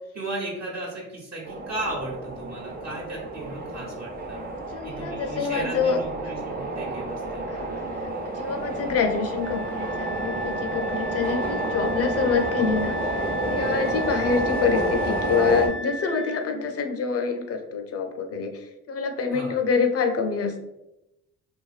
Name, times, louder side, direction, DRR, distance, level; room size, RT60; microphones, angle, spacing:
voice 1, 0.1-4.4 4.8-7.5 19.3-19.6, right 2 dB, 55° right, -3 dB, 0.9 m, -35 dB
sound 1, 1.5-15.7, right 2 dB, 30° right, 0.6 m, -30 dB
voice 2, 4.7-6.0 7.5-7.7 8.0-8.1 8.3-20.6, left 5 dB, 50° left, 5 dB, 0.4 m, -26 dB
Wind instrument woodwind instrument, 9.4-16.5, left 2 dB, 85° right, 0.8 m, -35 dB
2.5 x 2.3 x 2.3 m, 0.89 s
supercardioid pair, 65°, 32 cm